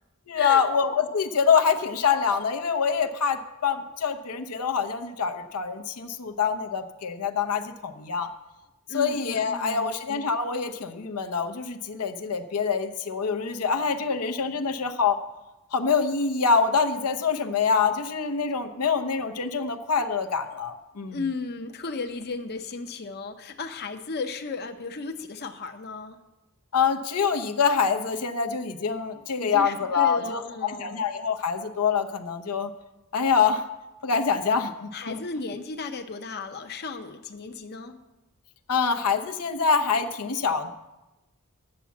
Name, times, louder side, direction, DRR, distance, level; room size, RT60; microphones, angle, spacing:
voice 1, 0.3-8.3 8.9-15.2 15.7-21.2 26.7-32.7 33.1-33.7 34.0-35.2 38.7-40.7, left 6 dB, 90° left, 8 dB, 0.8 m, -25 dB
voice 2, 8.9-9.9 21.1-26.2 29.4-31.1 34.9-38.0, left 4 dB, 50° left, 6 dB, 0.7 m, -35 dB
9.7 x 7.4 x 7.1 m, 1.0 s
head